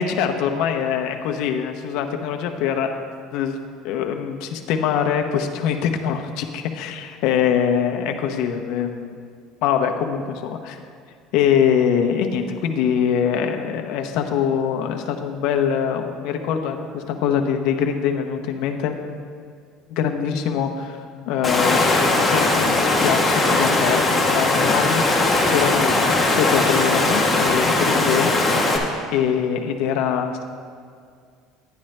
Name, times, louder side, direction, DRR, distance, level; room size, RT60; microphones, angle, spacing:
voice 1, 0.0-2.9 3.3-9.2 9.6-10.8 11.3-19.0 19.9-21.0 21.3-21.8 22.2-28.5 29.1-30.4, left 8 dB, 70° left, 4 dB, 0.8 m, -23 dB
Water, 21.4-28.8, left 2 dB, 15° left, 1.1 m, -19 dB
10.5 x 10.0 x 3.2 m, 2.2 s
cardioid pair, 145°, 0 cm